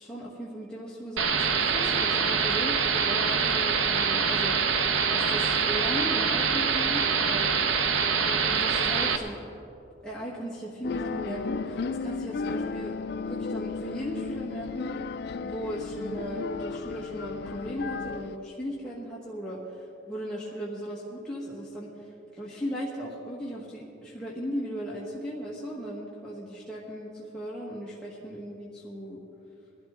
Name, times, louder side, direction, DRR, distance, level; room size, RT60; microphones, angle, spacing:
voice 1, 0.0-4.6 5.1-7.6 8.2-9.4 10.0-13.0 13.2-15.0 15.4-29.2, equal, 5° left, -7 dB, 1.4 m, -37 dB
sound 1, 1.2-9.2, right 5 dB, 85° right, 0.8 m, -25 dB
sound 2, 10.8-18.4, left 4 dB, 55° left, 0.3 m, -34 dB
21.0 x 12.5 x 3.7 m, 2.8 s
head